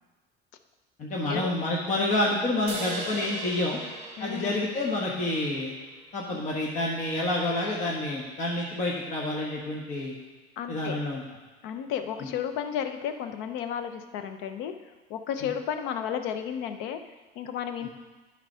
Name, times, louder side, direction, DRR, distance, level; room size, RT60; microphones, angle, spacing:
voice 1, 1.0-3.8 4.2-5.7 6.1-10.1 10.7-11.2 12.2-12.3 15.4-15.5, left 2 dB, 35° left, -3 dB, 1.3 m, -28 dB
sound 1, 2.7-6.2, right 2 dB, 25° right, 2.2 m, -39 dB
voice 2, 4.2-4.7 6.3-6.4 10.6-11.0 11.6-17.9, left 8 dB, 70° left, 8 dB, 0.8 m, -33 dB
11.5 x 4.0 x 5.6 m, 1.3 s
cardioid pair, 145°, 20 cm